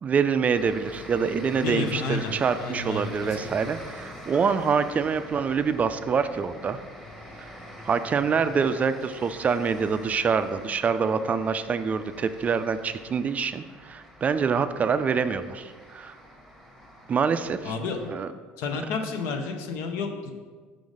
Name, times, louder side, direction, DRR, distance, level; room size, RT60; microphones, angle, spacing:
voice 1, 0.0-6.8 7.8-16.1 17.1-17.7 18.1-18.3, right 6 dB, 30° right, 11 dB, 0.3 m, -25 dB
sound 1, 0.5-18.1, equal, 5° left, 1.1 m, -45 dB
voice 2, 1.6-3.5 17.6-18.1 18.6-20.3, left 4 dB, 70° left, 5 dB, 0.7 m, -31 dB
5.2 x 3.9 x 4.8 m, 1.5 s
supercardioid pair, 95°, 5 cm